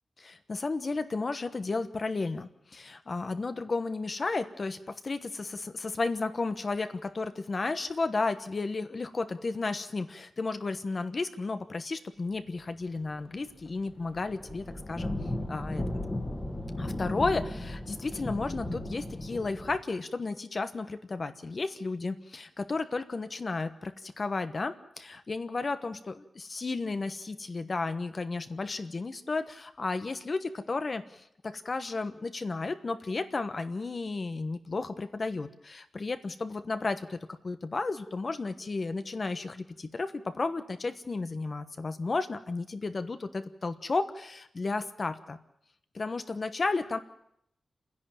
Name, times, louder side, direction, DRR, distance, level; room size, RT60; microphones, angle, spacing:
voice 1, 0.2-15.1 15.5-15.8 16.8-37.2 37.4-45.4 45.9-47.0, left 3 dB, 40° left, 10 dB, 1.2 m, -33 dB
sound 1, 13.1-13.3 13.5-19.8, left 1 dB, 20° left, 2.0 m, -35 dB
29.0 x 11.0 x 9.1 m, 0.74 s
wide cardioid pair, 115°, 0 cm